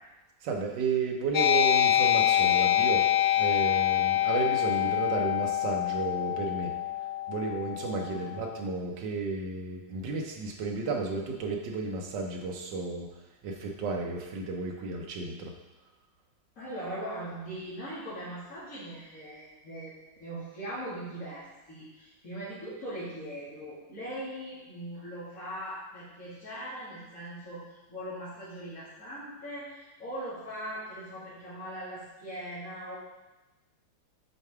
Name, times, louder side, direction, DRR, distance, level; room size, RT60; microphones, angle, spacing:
voice 1, 0.4-3.0 3.4-6.7 7.3-13.1 13.4-15.5, right 4 dB, 70° right, 1 dB, 1.5 m, -32 dB
sound 1, 1.3-8.4, left 12 dB, 70° left, 1.0 m, -26 dB
voice 2, 16.6-33.0, right 1 dB, 50° left, -12 dB, 2.4 m, -40 dB
6.8 x 4.7 x 3.5 m, 1.1 s
omnidirectional pair, 2.0 m